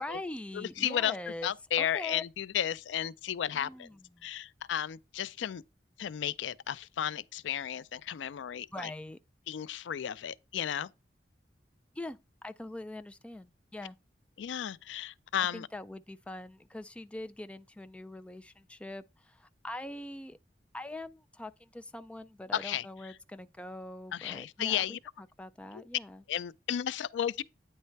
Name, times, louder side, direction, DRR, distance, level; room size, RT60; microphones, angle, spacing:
voice 1, 0.0-1.5 1.8-2.2 3.5-4.3 8.7-9.2 12.0-14.0 15.4-20.4 20.7-26.2, left 1 dB, 5° left, 0.3 m, -43 dB
voice 2, 0.5-1.2 1.4-3.9 4.2-5.6 6.0-8.9 9.5-10.9 14.4-15.7 22.5-22.9 24.1-25.0 25.7-25.8 26.3-27.4, left 10 dB, 90° left, 0.4 m, -33 dB
9.3 x 3.2 x 4.5 m
head